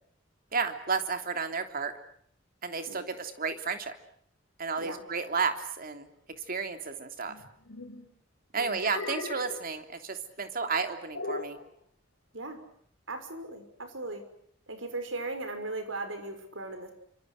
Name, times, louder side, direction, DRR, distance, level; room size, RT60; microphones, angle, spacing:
voice 1, 0.5-1.9 2.6-3.9 4.6-6.1 6.5-7.4 8.5-11.6, right 5 dB, 50° right, 7 dB, 3.2 m, -32 dB
sound 1, 7.3-8.1 8.8-9.6 11.1-11.6, left 2 dB, 90° left, 4.3 m, -38 dB
voice 2, 8.6-8.9 12.3-12.6 13.1-14.2 14.7-16.9, right 2 dB, 80° right, 8 dB, 6.0 m, -38 dB
29.0 x 26.5 x 6.6 m, 0.67 s
head